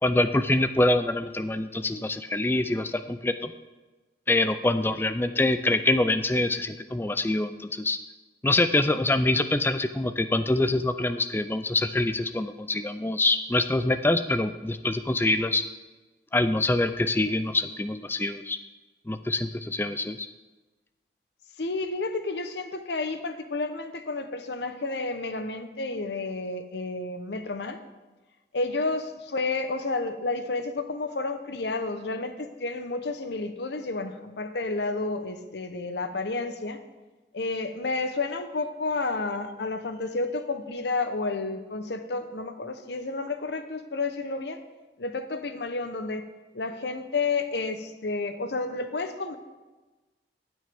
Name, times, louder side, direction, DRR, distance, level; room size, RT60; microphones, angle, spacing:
voice 1, 0.0-3.5 4.3-8.0 8.4-15.6 16.3-18.6 19.1-20.3, left 2 dB, 10° left, 11 dB, 0.3 m, -25 dB
voice 2, 21.6-27.8 28.5-36.8 37.3-44.6 45.0-46.2 46.5-49.4, left 3 dB, 75° left, 9 dB, 0.8 m, -31 dB
18.5 x 6.3 x 3.5 m, 1.2 s
head